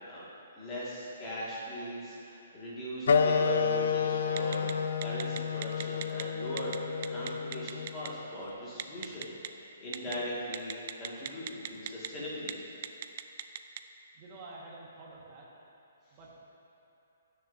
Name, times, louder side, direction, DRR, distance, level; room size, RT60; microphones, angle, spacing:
voice 1, 0.5-4.7 5.0-12.7, equal, 15° left, -8 dB, 2.0 m, -40 dB
sound 1, 3.1-8.2, left 5 dB, 65° left, 0.4 m, -30 dB
Telephone, 4.4-4.7 5.0-6.2 6.6-6.8 7.0-8.1 8.8-9.5 9.9-10.1 10.5-12.1 12.4-12.5 12.8-13.8, right 10 dB, 40° right, 0.4 m, -36 dB
voice 2, 14.1-15.5 16.1-16.3, right 2 dB, 25° right, -4 dB, 1.6 m, -49 dB
17.0 x 6.9 x 2.7 m, 2.8 s
hypercardioid pair, 170°, 0 cm